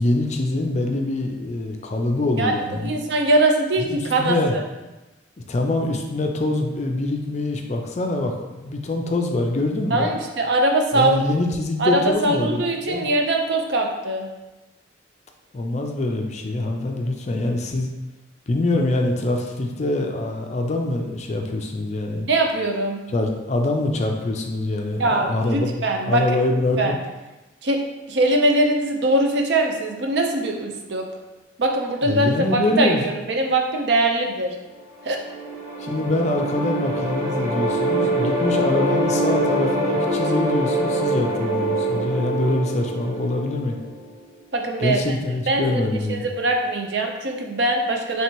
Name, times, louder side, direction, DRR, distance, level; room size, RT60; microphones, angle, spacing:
voice 1, 0.0-3.0 3.8-4.5 5.5-10.1 10.9-13.1 15.5-17.9 18.5-22.3 23.1-25.7 26.0-26.9 32.0-33.0 35.8-43.8 44.8-46.3, left 2 dB, 35° left, 3 dB, 0.4 m, -24 dB
voice 2, 2.8-4.6 9.9-11.2 11.8-14.3 22.3-23.0 25.0-26.2 26.8-26.9 27.6-31.1 31.6-34.5 35.0-35.2 44.5-45.0 45.5-45.8 46.1-48.2, right 2 dB, 60° right, 3 dB, 0.5 m, -22 dB
sound 1, 35.0-44.1, right 1 dB, 10° right, 0.8 m, -24 dB
3.2 x 2.8 x 4.5 m, 1.1 s
head